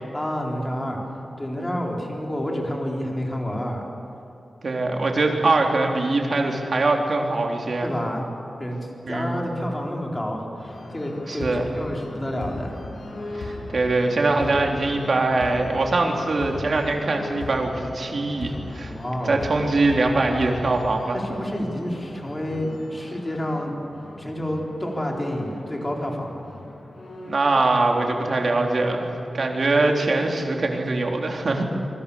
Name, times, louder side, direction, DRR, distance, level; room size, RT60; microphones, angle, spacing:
voice 1, 0.1-1.0 1.4-3.9 7.8-8.2 8.6-12.7 18.9-19.4 21.1-23.8 24.2-26.4, equal, 15° left, 0 dB, 4.3 m, -29 dB
voice 2, 4.6-7.9 9.1-9.4 11.3-11.7 13.3-18.9 19.2-21.2 27.2-31.6, right 2 dB, 55° right, 2 dB, 3.5 m, -22 dB
sound 1, 10.6-28.3, left 2 dB, 85° left, 6.3 m, -38 dB
26.5 x 24.0 x 7.1 m, 2.9 s
wide cardioid pair, 135°, 0 cm